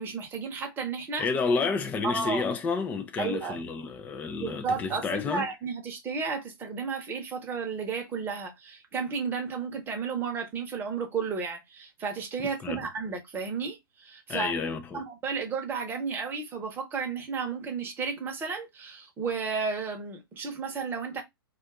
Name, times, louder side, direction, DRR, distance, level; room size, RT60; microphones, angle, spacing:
voice 1, 0.0-1.3 2.0-2.5 3.2-3.6 4.4-14.5 14.9-21.2, right 5 dB, 15° right, 0.9 m, -33 dB
voice 2, 1.2-5.5 12.6-12.8 14.3-15.0, left 4 dB, 10° left, 0.4 m, -30 dB
2.5 x 2.4 x 3.5 m
figure-of-eight pair, 120°, 13 cm